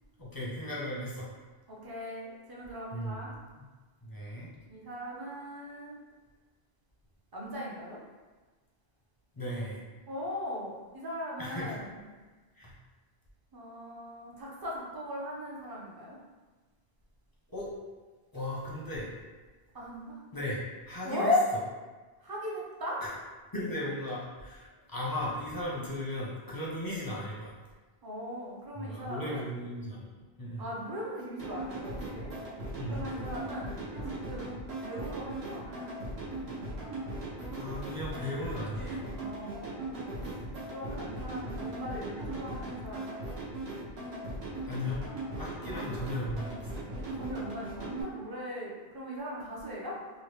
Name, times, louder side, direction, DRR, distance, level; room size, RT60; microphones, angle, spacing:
voice 1, 0.2-1.3 2.9-3.2 3.6-3.7 4.0-4.5 9.4-9.8 11.4-11.7 12.6-12.7 17.5-17.7 18.3-19.1 20.3-21.3 23.0-23.1 23.5-27.6 28.8-30.1 30.4-30.6 32.8-33.0 37.6-39.0 44.7-45.0 45.4-46.7, left 1 dB, 25° left, -6 dB, 0.5 m, -36 dB
voice 2, 1.7-3.3 4.7-6.0 7.3-8.0 10.1-12.0 13.5-16.2 19.7-20.2 21.0-21.5 22.2-23.0 28.0-29.4 30.6-32.3 32.9-33.7 34.1-34.5 34.8-35.8 39.1-39.9 40.2-40.4 40.7-43.3 45.6-45.9 47.1-50.0, left 1 dB, 30° right, -4 dB, 0.5 m, -37 dB
sound 1, 31.4-48.0, right 1 dB, 80° right, 1.1 m, -38 dB
3.0 x 2.2 x 3.2 m, 1.3 s
omnidirectional pair, 1.1 m